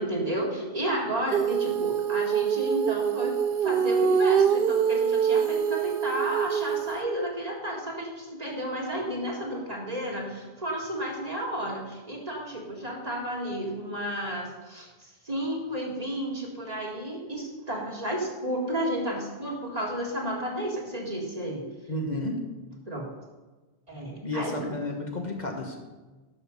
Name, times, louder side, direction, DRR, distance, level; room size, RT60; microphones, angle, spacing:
voice 1, 0.0-3.4 3.6-21.6 22.9-23.1 23.9-24.7, right 1 dB, 40° right, -2 dB, 2.0 m, -32 dB
Female singing, 1.3-7.0, right 7 dB, 65° right, 0.7 m, -24 dB
voice 2, 21.9-22.4 24.2-25.8, left 1 dB, 45° left, 2 dB, 1.2 m, -31 dB
11.5 x 6.7 x 5.3 m, 1.2 s
omnidirectional pair, 1.1 m